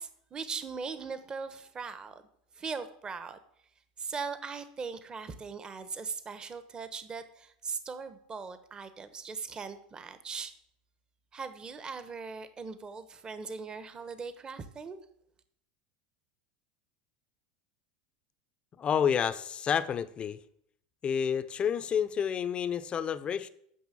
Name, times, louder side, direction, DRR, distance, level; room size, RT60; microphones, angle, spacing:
voice 1, 0.0-2.2 2.5-3.4 4.0-10.5 11.3-15.0, right 5 dB, 25° right, 11 dB, 1.1 m, -39 dB
voice 2, 18.8-20.4 21.0-23.5, left 8 dB, 30° left, 14 dB, 0.7 m, -29 dB
9.5 x 6.4 x 7.6 m, 0.71 s
supercardioid pair, 115°, 4 cm